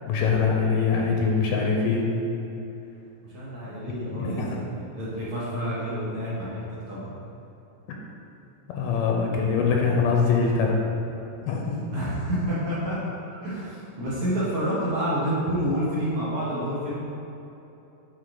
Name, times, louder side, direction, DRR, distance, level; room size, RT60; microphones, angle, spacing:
voice 1, 0.1-2.1 4.2-4.6 8.7-10.8 11.4-11.8, left 5 dB, 85° left, 0 dB, 2.3 m, -23 dB
voice 2, 3.2-7.1 11.9-13.0 13.3-17.0, equal, 55° right, -9 dB, 1.8 m, -29 dB
8.0 x 4.1 x 3.9 m, 3.0 s
omnidirectional pair, 3.9 m